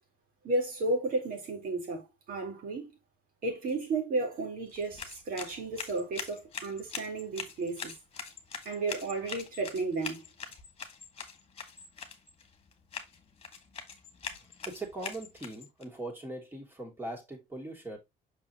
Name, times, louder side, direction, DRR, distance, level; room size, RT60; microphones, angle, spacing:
voice 1, 0.4-2.9 3.4-7.9 8.6-10.2, right 2 dB, 60° right, 4.0 m, -33 dB
sound 1, 4.7-15.8, left 5 dB, 35° left, 1.8 m, -43 dB
voice 2, 14.6-18.0, right 2 dB, 10° right, 3.0 m, -40 dB
6.3 x 5.7 x 3.0 m
cardioid pair, 110°, 17 cm